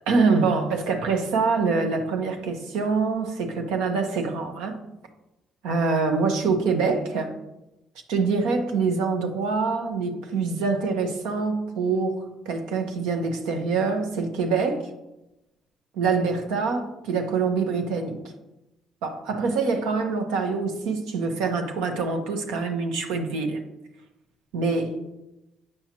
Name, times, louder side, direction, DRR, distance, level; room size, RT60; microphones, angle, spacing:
voice 1, 0.1-4.8 5.6-7.3 8.1-14.8 15.9-18.2 19.0-23.6 24.5-25.0, right 4 dB, 80° right, 5 dB, 0.9 m, -25 dB
7.9 x 5.7 x 2.9 m, 0.94 s
supercardioid pair, 60°, 0 cm